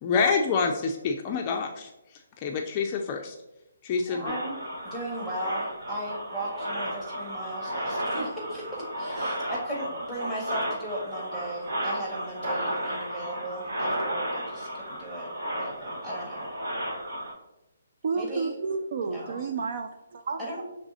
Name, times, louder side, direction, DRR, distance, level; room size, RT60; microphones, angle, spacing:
voice 1, 0.0-3.4 3.8-4.3, left 5 dB, 25° left, 3 dB, 0.4 m, -27 dB
voice 2, 4.1-4.6 4.8-16.5 18.1-18.5 19.0-19.5 20.4-20.6, right 1 dB, 10° right, -6 dB, 1.6 m, -37 dB
sound 1, 4.2-17.3, equal, 70° right, 1.3 m, -33 dB
voice 3, 18.0-20.6, right 4 dB, 55° right, 7 dB, 0.3 m, -31 dB
5.9 x 3.4 x 2.7 m, 0.97 s
hypercardioid pair, 160°, 0 cm